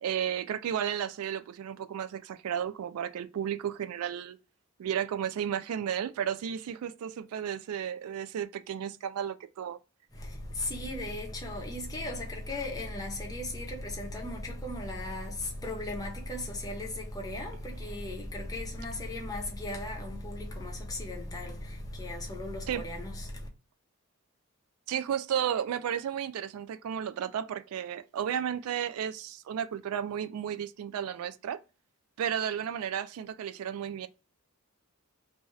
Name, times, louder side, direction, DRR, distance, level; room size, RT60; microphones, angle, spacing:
voice 1, 0.0-4.4 4.8-9.8 22.7-22.8 24.9-31.6 32.2-34.1, right 9 dB, 90° right, 0.3 m, -33 dB
voice 2, 10.1-23.5, left 1 dB, 15° left, 0.7 m, -37 dB
2.6 x 2.3 x 3.1 m
head